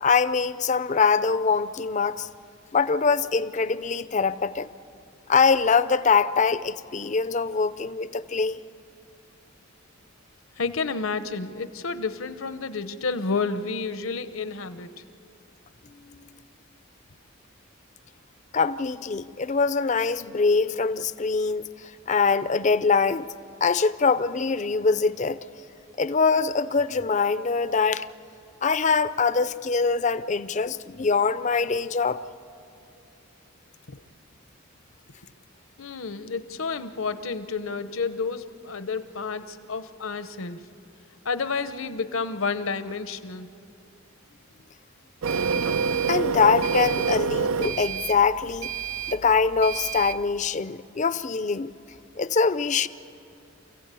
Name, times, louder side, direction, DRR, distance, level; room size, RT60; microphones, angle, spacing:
voice 1, 0.0-2.3 2.7-4.7 5.3-8.6 18.5-21.7 22.1-23.3 23.6-25.4 26.0-28.1 28.6-32.2 46.1-48.7 49.1-51.7 52.2-52.9, left 5 dB, 35° left, 0.5 m, -23 dB
voice 2, 10.6-15.0 33.9-34.0 35.8-40.6 41.2-43.5, left 4 dB, 75° left, 0.9 m, -30 dB
Printer, 45.2-50.2, right 5 dB, 80° right, 0.6 m, -27 dB
28.5 x 15.5 x 8.4 m
head